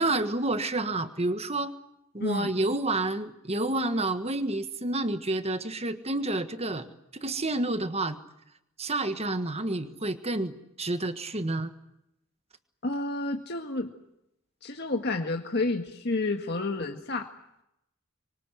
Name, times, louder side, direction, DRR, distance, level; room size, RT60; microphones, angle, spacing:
voice 1, 0.0-1.7 2.1-6.9 7.2-8.2 8.8-11.7, right 2 dB, 30° right, 9 dB, 1.5 m, -29 dB
voice 2, 2.2-2.5 12.8-13.9 14.6-17.3, left 2 dB, 50° left, 3 dB, 1.8 m, -30 dB
26.0 x 24.0 x 8.0 m, 0.83 s
head